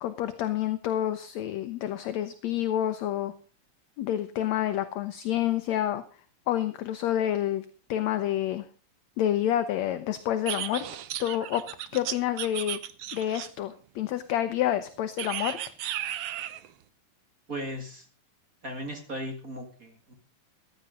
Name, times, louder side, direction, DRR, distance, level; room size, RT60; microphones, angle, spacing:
voice 1, 0.0-3.3 4.0-6.0 6.5-8.7 9.2-10.9 11.2-11.6 11.9-12.8 13.1-15.6, left 11 dB, 70° left, 10 dB, 1.9 m, -28 dB
sound 1, 10.5-13.7 15.2-16.7, right 12 dB, 85° right, 1.3 m, -35 dB
voice 2, 17.5-18.1 18.6-20.1, equal, 30° right, 5 dB, 2.0 m, -37 dB
15.0 x 11.0 x 5.1 m, 0.37 s
omnidirectional pair, 3.8 m